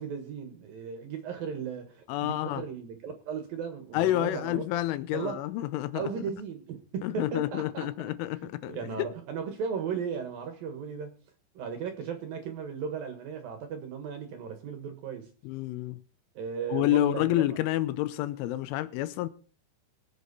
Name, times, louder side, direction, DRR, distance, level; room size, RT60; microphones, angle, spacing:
voice 1, 0.0-4.6 5.1-5.4 5.9-8.1 8.6-11.1 11.5-15.3 16.4-17.6, right 6 dB, 65° right, 2.5 m, -36 dB
voice 2, 2.1-2.6 3.9-6.1 7.0-9.1 15.4-16.0 16.7-19.3, left 14 dB, 80° left, 3.2 m, -29 dB
23.0 x 7.7 x 4.1 m
omnidirectional pair, 5.6 m